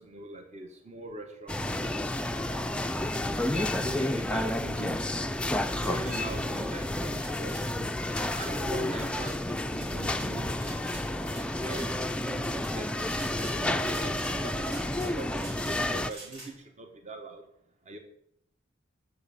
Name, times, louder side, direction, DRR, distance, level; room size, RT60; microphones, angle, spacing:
voice 1, 0.0-2.8 3.3-5.1 5.8-7.9 8.2-10.5 11.4-17.4 17.9-18.0, right 2 dB, 35° right, 5 dB, 1.2 m, -42 dB
sound 1, 1.5-16.1, left 1 dB, 5° left, 0.4 m, -30 dB
sound 2, 5.7-6.2 7.1-7.7 8.1-8.5 8.9-9.4 9.7-10.3 10.6-11.4 11.7-11.9 12.4-12.7 13.1-13.6 13.9-14.3 14.6-15.8 16.1-16.5, right 2 dB, 80° right, 6.0 m, -46 dB
11.0 x 7.1 x 7.0 m, 0.74 s
head